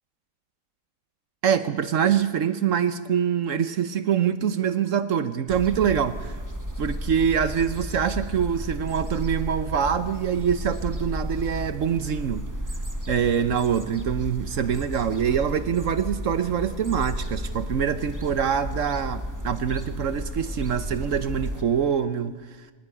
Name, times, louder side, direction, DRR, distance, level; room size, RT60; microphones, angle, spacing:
voice 1, 1.4-6.4 6.8-12.5 13.1-22.7, right 8 dB, 70° right, 12 dB, 1.2 m, -25 dB
sound 1, 5.5-21.6, equal, 15° right, 1.4 m, -33 dB
19.5 x 19.0 x 9.8 m, 1.4 s
omnidirectional pair, 1.4 m